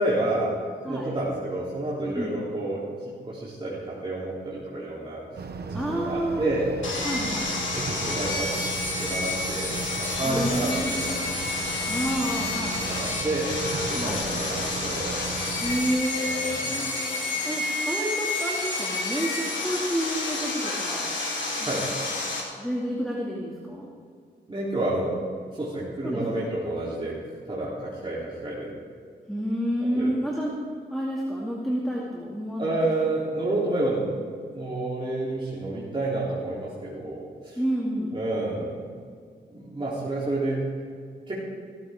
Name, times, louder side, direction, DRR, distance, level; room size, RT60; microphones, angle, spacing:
voice 1, 0.0-5.2 5.7-6.7 7.7-8.5 9.0-11.2 12.8-15.1 15.4-15.5 16.1-16.7 21.6-21.8 24.5-25.2 25.5-27.2 27.5-28.8 30.0-30.1 32.6-34.2 34.5-37.6 38.1-38.8 39.5-40.9 41.3-41.4, right 2 dB, 25° right, -8 dB, 3.4 m, -29 dB
sound 1, 5.4-15.9, right 3 dB, 55° right, 1.1 m, -36 dB
voice 2, 5.7-6.5 7.0-7.5 10.2-11.2 11.9-12.8 13.9-14.2 15.6-16.9 17.4-21.1 21.6-21.8 22.6-23.9 26.0-26.5 29.3-30.6 30.9-32.9 37.6-38.2, equal, ahead, -4 dB, 2.4 m, -29 dB
Sawing, 6.8-22.4, left 2 dB, 80° left, 3.4 m, -30 dB
17.0 x 13.5 x 3.7 m, 2.2 s
wide cardioid pair, 85°, 19 cm